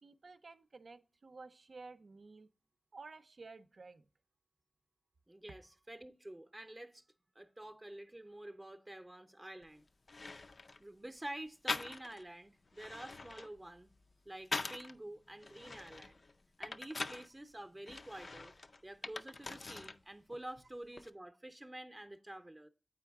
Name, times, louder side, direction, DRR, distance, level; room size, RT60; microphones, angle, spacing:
voice 1, 0.0-2.5 2.9-4.1, right 3 dB, 75° right, 0.5 m, -53 dB
voice 2, 5.3-7.0 7.3-9.8 10.8-13.9 14.2-16.2 16.6-18.5 18.8-22.7, right 1 dB, 25° right, 0.6 m, -49 dB
puzzle pieces, 9.6-9.7 10.1-10.8 11.7-12.3 12.7-14.9 15.4-17.3 17.9-20.0 20.3-21.1, left 3 dB, 60° left, 0.4 m, -43 dB
8.4 x 4.6 x 3.5 m
wide cardioid pair, 75°, 0 cm